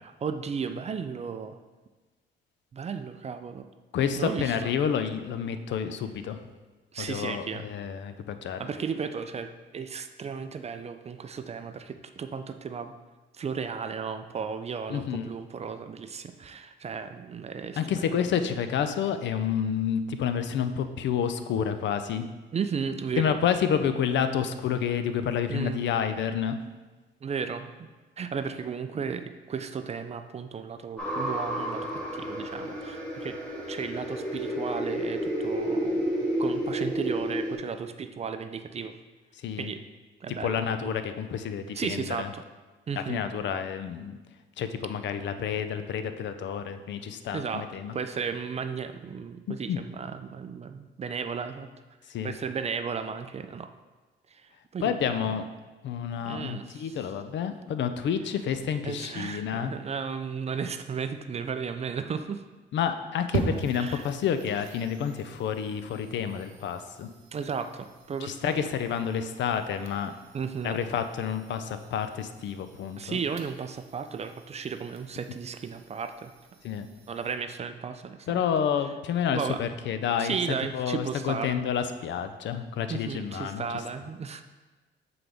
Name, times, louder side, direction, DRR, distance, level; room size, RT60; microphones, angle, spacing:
voice 1, 0.2-1.6 2.7-3.7 4.2-4.7 6.9-7.6 8.6-12.9 13.4-18.3 22.5-23.4 25.5-25.8 27.2-27.9 28.2-33.4 33.7-36.1 36.4-38.9 39.6-39.8 40.2-40.9 41.7-42.4 42.9-43.2 47.3-47.6 47.9-51.7 52.2-53.7 54.3-55.3 56.2-57.0 58.8-62.4 63.5-64.0 67.3-68.7 70.3-70.8 73.0-76.3 77.1-78.4 79.3-79.6 80.2-81.6 82.9-84.4, right 6 dB, 35° right, 9 dB, 0.4 m, -34 dB
voice 2, 3.9-6.4 7.0-8.7 14.9-15.3 17.8-22.3 23.2-26.6 39.4-39.7 40.4-42.3 43.0-44.2 44.6-48.0 49.5-49.8 52.1-52.3 54.8-55.4 55.8-59.7 62.7-67.1 68.2-70.1 70.6-73.2 76.6-76.9 78.3-80.4 80.7-83.8, left 8 dB, 65° left, 9 dB, 0.5 m, -29 dB
sound 1, 31.0-37.6, equal, 5° left, 1.9 m, -31 dB
sound 2, 63.3-77.3, right 4 dB, 80° right, 0.7 m, -41 dB
7.6 x 3.9 x 3.4 m, 1.2 s
cardioid pair, 90°, 20 cm